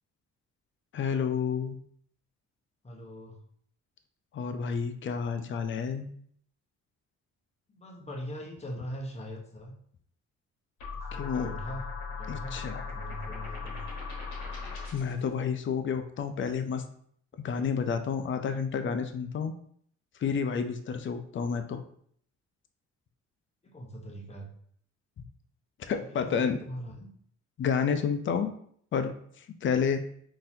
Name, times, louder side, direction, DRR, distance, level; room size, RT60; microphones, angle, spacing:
voice 1, 0.9-1.8 4.3-6.1 11.1-11.5 12.3-12.8 14.9-16.8 17.4-19.5 20.2-21.8 25.9-26.6 27.6-28.5 28.9-30.0, left 6 dB, 40° left, 8 dB, 0.5 m, -30 dB
voice 2, 2.8-3.4 7.7-9.7 10.9-13.8 23.6-24.5 25.8-27.1, equal, 20° left, 0 dB, 0.8 m, -41 dB
sound 1, 10.8-15.2, left 4 dB, 70° left, 1.2 m, -38 dB
3.9 x 2.7 x 2.6 m, 0.63 s
cardioid pair, 90°, 30 cm